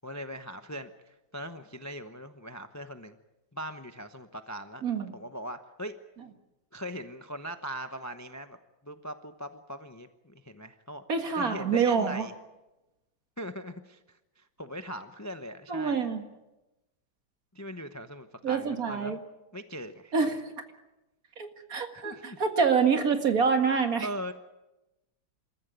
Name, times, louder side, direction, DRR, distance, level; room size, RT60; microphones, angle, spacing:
voice 1, 0.0-3.1 3.5-4.8 5.1-5.9 6.7-8.6 8.8-11.0 11.3-12.3 13.4-16.1 17.5-19.2 19.5-20.1 22.0-22.4 24.0-24.3, equal, 25° left, 9 dB, 0.3 m, -40 dB
voice 2, 4.8-5.2 11.1-12.2 15.7-16.2 18.4-19.2 20.1-20.4 21.4-24.1, right 5 dB, 50° right, 6 dB, 2.2 m, -26 dB
27.0 x 14.0 x 9.3 m, 1.0 s
omnidirectional pair, 2.1 m